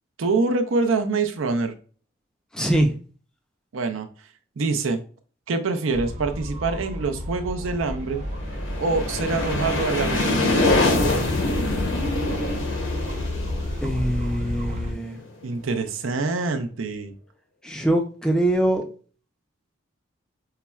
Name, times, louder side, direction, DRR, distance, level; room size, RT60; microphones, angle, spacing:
voice 1, 0.2-1.8 3.7-4.1 4.6-5.0 5.5-8.2 8.8-10.5 15.4-17.1, right 3 dB, 80° right, 6 dB, 0.5 m, -25 dB
voice 2, 2.5-2.9 13.8-15.2 17.6-18.9, right 1 dB, 5° left, 3 dB, 0.4 m, -23 dB
sound 1, 5.9-14.9, left 1 dB, 35° right, 0.8 m, -31 dB
sound 2, 8.2-15.0, left 2 dB, 75° left, 0.8 m, -25 dB
5.6 x 2.1 x 2.3 m, 0.40 s
head